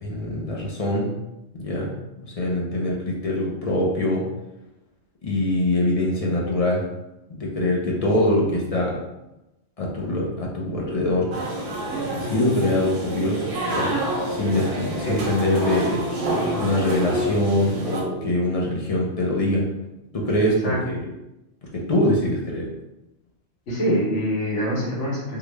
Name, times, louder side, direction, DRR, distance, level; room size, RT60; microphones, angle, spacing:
voice 1, 0.0-1.1 1.6-1.9 2.2-4.2 5.2-6.8 7.4-9.0 9.8-11.3 12.2-13.4 13.7-14.0 14.3-16.0 16.6-19.6 20.1-21.0 21.9-22.7, left 1 dB, 35° left, -3 dB, 0.6 m, -23 dB
sound 1, 11.3-18.0, right 1 dB, 75° right, 1.1 m, -28 dB
voice 2, 23.7-25.4, equal, 65° left, -5 dB, 1.4 m, -24 dB
3.8 x 2.3 x 3.2 m, 0.95 s
omnidirectional pair, 1.3 m